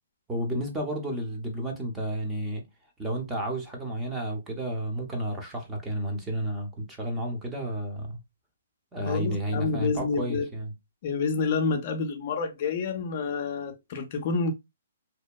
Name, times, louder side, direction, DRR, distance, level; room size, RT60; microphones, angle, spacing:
voice 1, 0.3-2.6 3.0-8.2 8.9-10.7, right 1 dB, 10° right, 0.6 m, -31 dB
voice 2, 9.1-10.5 11.0-14.5, left 4 dB, 40° left, 0.4 m, -28 dB
2.8 x 2.1 x 2.2 m
hypercardioid pair, 150°, 0 cm